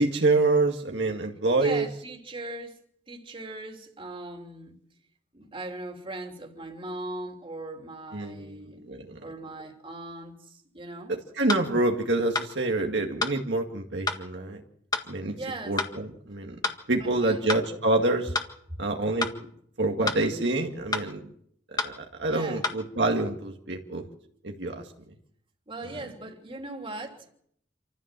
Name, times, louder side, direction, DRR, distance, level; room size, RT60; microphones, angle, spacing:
voice 1, 0.0-1.9 8.1-9.2 11.1-14.6 15.1-15.4 15.7-16.6 16.9-18.3 18.8-19.3 19.8-21.2 21.8-24.1 24.4-24.8, right 2 dB, 70° right, 2.1 m, -27 dB
voice 2, 1.6-2.8 3.1-4.8 5.3-8.8 9.2-11.2 15.4-15.8 17.0-17.5 22.3-22.7 25.7-27.3, right 2 dB, 30° right, 3.1 m, -39 dB
sound 1, 11.5-11.7 12.4-12.5 13.2-13.4 14.1-14.2 14.9-15.1 15.8-15.9 16.6-16.8 17.5-17.7 18.3-18.5 19.2-19.4 20.1-20.2 20.9-21.1 21.8-22.0 22.6-22.8, left 3 dB, 25° left, 1.7 m, -29 dB
27.0 x 14.5 x 7.6 m
head